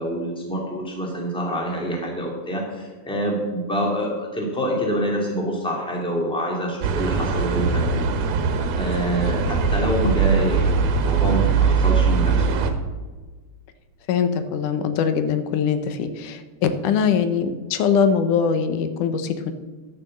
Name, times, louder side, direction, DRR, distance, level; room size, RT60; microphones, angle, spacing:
voice 1, 0.0-8.1 8.4-12.5, right 1 dB, ahead, -1 dB, 1.9 m, -26 dB
sound 1, 6.8-12.7, right 5 dB, 80° right, 2.5 m, -21 dB
voice 2, 14.1-19.5, left 7 dB, 85° left, 10 dB, 2.4 m, -22 dB
11.5 x 6.5 x 7.4 m, 1.3 s
omnidirectional pair, 3.5 m